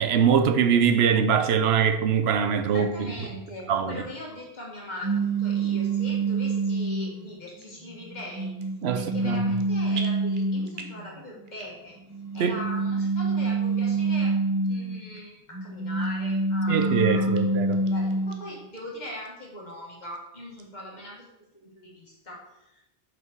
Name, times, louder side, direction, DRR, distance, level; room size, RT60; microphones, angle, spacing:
voice 1, 0.0-2.9 3.7-4.0 8.8-9.4 12.4-12.5 16.7-17.8, right 7 dB, 80° right, 0.9 m, -22 dB
voice 2, 2.7-8.5 8.9-12.0 12.3-14.3 14.6-17.4 17.8-21.3 21.5-22.8, left 1 dB, 45° left, 1.9 m, -40 dB
sound 1, 5.0-7.2 7.9-11.0 12.1-15.1 15.5-18.5, right 3 dB, 20° right, 0.7 m, -26 dB
sound 2, 7.6-7.8 8.4-8.9 9.2-9.6 9.9-11.1 11.4-12.0 12.3-12.4 13.1-13.2 13.8-13.9 14.6-14.8 15.1-15.2 15.7-16.4 16.8-16.9 17.3-17.4 17.7-18.4 18.8-18.9 19.2-19.3 19.7-20.2 20.6-20.7, right 5 dB, 55° right, 1.0 m, -43 dB
6.0 x 5.5 x 4.5 m
omnidirectional pair, 1.0 m